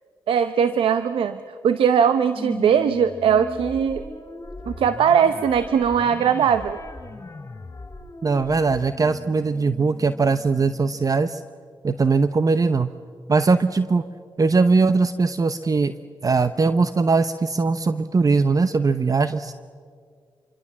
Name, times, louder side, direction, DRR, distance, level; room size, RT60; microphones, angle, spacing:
voice 1, 0.3-1.4 1.6-4.0 4.7-6.8, right 7 dB, 85° right, 11 dB, 0.8 m, -20 dB
sound 1, 2.3-11.1, left 3 dB, 35° left, 4.6 m, -39 dB
voice 2, 8.2-11.4 11.8-12.9 13.3-14.0 14.4-15.9 16.2-19.5, right 4 dB, 40° right, 11 dB, 0.8 m, -20 dB
27.0 x 24.0 x 7.4 m, 2.1 s
cardioid pair, 55°, 9 cm